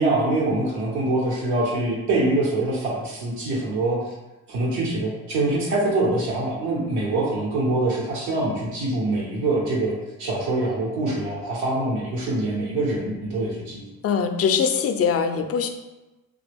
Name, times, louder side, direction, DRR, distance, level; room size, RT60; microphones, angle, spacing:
voice 1, 0.0-4.0 4.5-9.9 10.2-13.8, right 2 dB, 80° right, -4 dB, 1.0 m, -24 dB
voice 2, 14.0-15.7, left 6 dB, 40° left, 6 dB, 0.4 m, -22 dB
2.8 x 2.2 x 3.4 m, 1.1 s
supercardioid pair, 60°, 37 cm